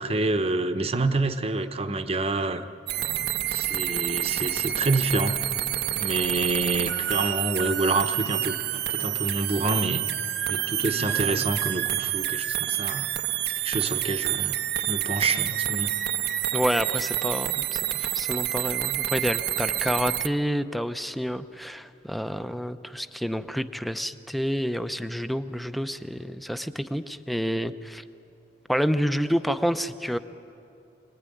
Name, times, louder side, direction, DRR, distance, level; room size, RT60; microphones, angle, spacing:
voice 1, 0.0-2.7 3.5-5.4 5.9-10.0 10.5-13.1 13.6-15.9, right 2 dB, 35° right, 9 dB, 1.0 m, -27 dB
sound 1, 2.9-20.3, right 12 dB, 65° right, 0.6 m, -28 dB
voice 2, 16.5-28.0 28.7-30.2, equal, ahead, 10 dB, 0.7 m, -28 dB
24.5 x 19.0 x 9.9 m, 2.7 s
head